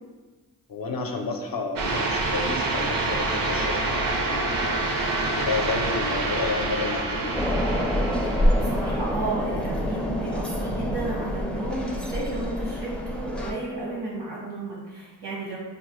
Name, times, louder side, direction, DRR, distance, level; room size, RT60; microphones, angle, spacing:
voice 1, 0.7-4.9 5.2-7.3, left 4 dB, 60° left, 3 dB, 0.6 m, -31 dB
sound 1, 1.8-9.0, right 2 dB, 55° right, 0.6 m, -27 dB
sound 2, 7.3-13.5, equal, 5° left, 0.4 m, -26 dB
voice 2, 8.2-15.6, right 2 dB, 85° right, -5 dB, 1.4 m, -33 dB
5.2 x 2.0 x 3.0 m, 1.3 s
cardioid pair, 65°, 40 cm